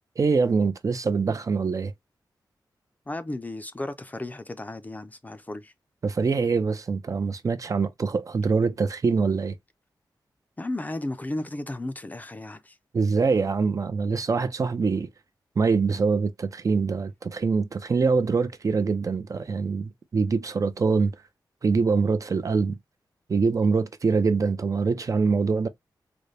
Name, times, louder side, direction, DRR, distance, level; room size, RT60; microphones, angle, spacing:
voice 1, 0.2-1.9 6.0-9.6 12.9-15.1 15.6-21.2 21.6-22.8 23.3-25.7, right 4 dB, 45° right, 0.5 m, -24 dB
voice 2, 3.1-5.7 10.6-12.8, left 1 dB, 20° left, 0.5 m, -34 dB
4.0 x 2.2 x 3.2 m
wide cardioid pair, 105°, 8 cm